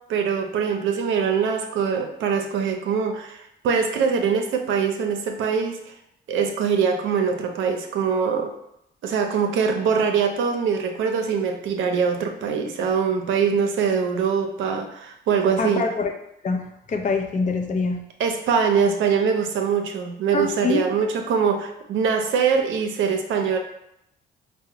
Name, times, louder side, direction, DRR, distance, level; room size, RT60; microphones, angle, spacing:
voice 1, 0.1-5.8 6.3-8.5 9.0-15.8 18.2-23.6, right 6 dB, 80° right, 4 dB, 0.6 m, -23 dB
voice 2, 15.6-16.1 16.4-18.0 20.3-20.8, left 4 dB, 40° left, 4 dB, 0.5 m, -24 dB
4.7 x 2.1 x 2.8 m, 0.79 s
cardioid pair, 90°, 20 cm